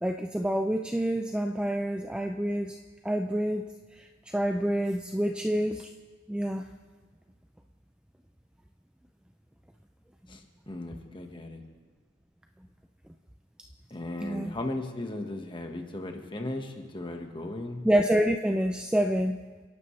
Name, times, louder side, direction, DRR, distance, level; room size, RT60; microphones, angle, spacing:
voice 1, 0.0-2.8 3.0-3.7 4.0-5.9 6.3-6.6 14.2-14.5 17.8-19.4, equal, 5° right, 5 dB, 0.3 m, -27 dB
voice 2, 10.3-11.6 13.9-17.8, left 1 dB, 25° left, 4 dB, 1.3 m, -36 dB
29.5 x 11.5 x 3.2 m, 1.4 s
head